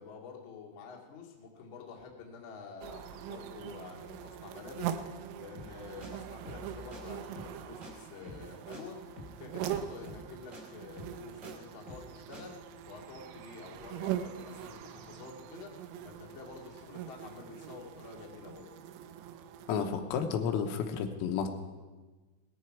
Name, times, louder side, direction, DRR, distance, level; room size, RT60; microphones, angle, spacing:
voice 1, 0.0-5.0 5.4-9.0 9.4-18.7, left 5 dB, 70° left, -2 dB, 1.1 m, -48 dB
sound 1, 2.8-19.9, right 10 dB, 80° right, 3.2 m, -42 dB
sound 2, 5.5-5.7 6.0-6.1 6.4-6.6 6.9-7.0 7.3-7.6 7.8-7.9 8.2-8.5 8.7-8.8 9.2-9.4 9.6-9.7 10.1-10.3 10.5-10.6 11.0-11.5 11.9-12.1 12.3-12.4, left 1 dB, 35° right, 1.2 m, -47 dB
voice 2, 19.7-21.5, left 7 dB, 90° left, 5 dB, 3.8 m, -31 dB
19.0 x 14.0 x 4.7 m, 1.3 s
omnidirectional pair, 6.0 m